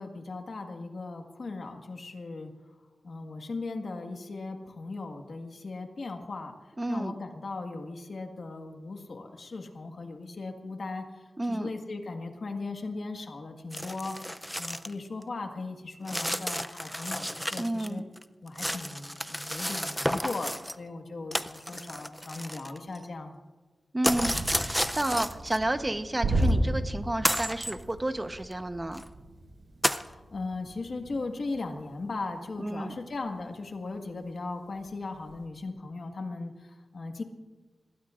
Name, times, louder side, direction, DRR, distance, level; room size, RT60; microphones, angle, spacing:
voice 1, 0.0-2.5 3.0-6.6 6.9-14.2 14.6-18.0 18.4-23.4 30.1-37.2, left 3 dB, 60° left, 4 dB, 1.6 m, -38 dB
voice 2, 6.8-7.1 11.4-11.7 17.6-18.1 23.9-29.0 32.6-32.9, right 1 dB, 20° right, 8 dB, 1.0 m, -31 dB
sound 1, 13.7-14.9 15.2-15.3 16.1-17.9 18.2-20.7 21.3-23.0 24.0-25.6 26.4-26.5 27.2-27.8 28.5-28.6 28.9-29.1 29.8-30.1, equal, ahead, 0.5 m, -31 dB
sound 2, 24.0-33.8 34.1-34.3 34.7-35.4, right 1 dB, 75° right, 5.4 m, -34 dB
26.0 x 21.0 x 2.5 m, 1.3 s
wide cardioid pair, 110°, 0 cm